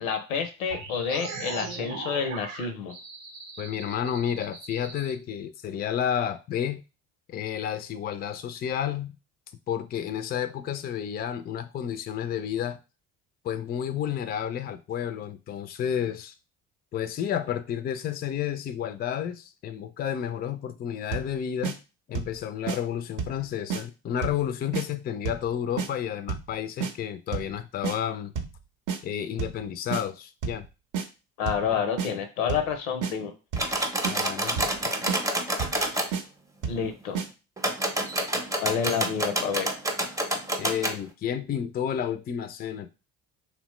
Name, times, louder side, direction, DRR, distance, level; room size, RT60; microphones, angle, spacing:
voice 1, 0.0-2.9 31.4-33.3 36.7-37.2 38.6-39.7, left 7 dB, 85° left, 0.6 m, -29 dB
sound 1, 0.7-5.1, right 4 dB, 85° right, 0.7 m, -39 dB
voice 2, 3.6-6.8 7.3-9.2 9.7-12.8 13.4-16.3 16.9-21.8 22.1-28.3 29.0-30.7 31.7-31.8 34.1-34.6 35.7-35.8 40.6-42.9, left 9 dB, 25° left, 0.3 m, -31 dB
sound 2, 21.1-21.3 21.6-21.8 22.1-22.4 22.7-22.8 23.2-23.4 23.7-23.8 24.2-24.4 24.7-24.9 25.2-25.5 25.8-25.9 26.3-26.5 26.8-26.9 27.3-27.5 27.8-28.0 28.3-28.6 28.9-29.0 29.4-29.6 29.9-30.0 30.4-30.6 30.9-31.1 31.5-31.7 32.0-32.1 32.5-32.7 33.0-33.1 33.5-33.7 34.0-34.2 34.6-34.8 35.1-35.2 35.6-35.8 36.1-36.2 36.6-36.8 37.1-37.3, right 6 dB, 50° right, 0.7 m, -30 dB
sound 3, 33.6-36.1 37.6-41.0, right 1 dB, 10° right, 0.6 m, -28 dB
2.9 x 2.1 x 3.0 m
hypercardioid pair, 55°, 39 cm